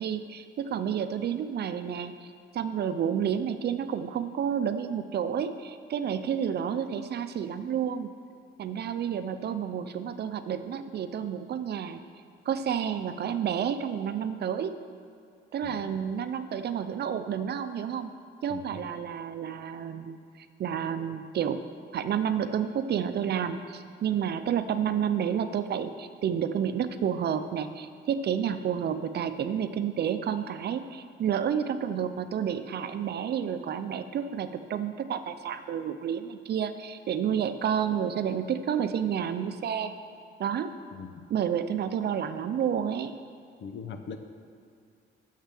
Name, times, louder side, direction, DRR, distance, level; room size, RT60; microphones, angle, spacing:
voice 1, 0.0-8.1 8.6-12.0 12.5-14.8 15.5-18.1 18.4-21.6 21.9-39.9 40.4-40.7 41.3-43.1, right 8 dB, 55° right, 10 dB, 0.6 m, -30 dB
voice 2, 15.6-15.9 18.5-18.8 40.9-41.2 43.6-44.2, left 6 dB, 65° left, 8 dB, 0.8 m, -41 dB
6.8 x 6.6 x 7.5 m, 2.4 s
cardioid pair, 90°, 20 cm